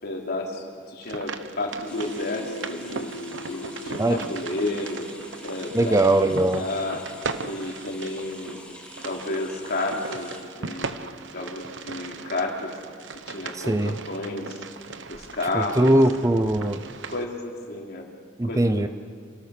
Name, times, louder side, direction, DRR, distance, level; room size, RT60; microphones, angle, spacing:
voice 1, 0.0-3.1 3.5-5.0 5.4-7.0 7.4-8.6 9.0-10.9 11.3-12.8 13.3-14.6 15.1-15.9 17.1-18.1 18.4-18.9, left 2 dB, 55° left, 0 dB, 3.5 m, -31 dB
sound 1, 1.0-17.3, right 4 dB, 70° right, 1.0 m, -38 dB
sound 2, 1.9-7.5, left 1 dB, 70° left, 2.3 m, -40 dB
sound 3, 1.9-10.4, left 1 dB, 5° left, 2.6 m, -46 dB
voice 2, 5.7-6.7 13.7-13.9 15.5-16.8 18.4-18.9, right 1 dB, 15° right, 10 dB, 0.6 m, -20 dB
26.5 x 18.0 x 6.7 m, 2.1 s
head